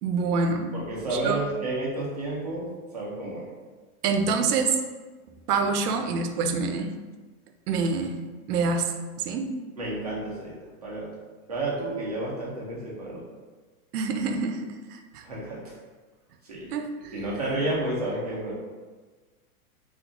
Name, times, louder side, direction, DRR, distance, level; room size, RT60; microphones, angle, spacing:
voice 1, 0.0-0.7 1.1-1.4 4.0-4.8 5.5-6.9 7.7-8.2 8.5-8.9 9.2-9.5 13.9-15.2 16.7-17.3, right 4 dB, 90° right, 6 dB, 0.5 m, -26 dB
voice 2, 0.7-2.7 2.9-3.5 9.8-10.5 10.8-11.1 11.5-13.2 15.2-15.7 16.4-16.7 17.1-18.6, right 2 dB, 30° right, -6 dB, 0.4 m, -31 dB
2.5 x 2.3 x 3.6 m, 1.3 s
supercardioid pair, 175°, 45 cm